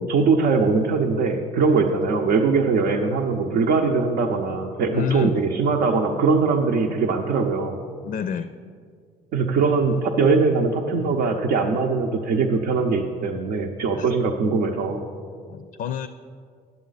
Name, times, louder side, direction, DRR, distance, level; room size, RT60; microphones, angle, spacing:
voice 1, 0.1-7.8 9.3-15.0, right 4 dB, 75° right, 0 dB, 0.7 m, -21 dB
voice 2, 4.9-5.3 8.0-8.5 14.0-14.1 15.5-16.1, left 8 dB, 55° left, 10 dB, 0.4 m, -28 dB
10.5 x 7.2 x 4.0 m, 2.1 s
cardioid pair, 110°, 17 cm